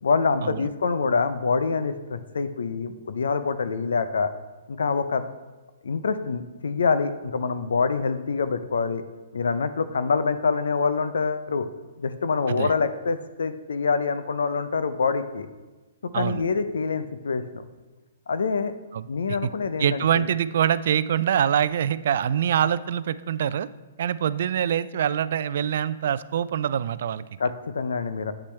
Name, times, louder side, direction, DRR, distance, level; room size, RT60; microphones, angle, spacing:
voice 1, 0.0-4.3 4.7-5.2 5.8-9.0 9.3-11.7 12.0-15.5 16.1-17.6 18.3-18.7 19.1-20.3 27.4-28.3, left 5 dB, 85° left, 12 dB, 0.6 m, -25 dB
voice 2, 19.8-23.7 24.0-27.3, right 9 dB, 60° right, 16 dB, 0.3 m, -24 dB
8.5 x 8.1 x 3.3 m, 1.2 s
hypercardioid pair, 145°, 0 cm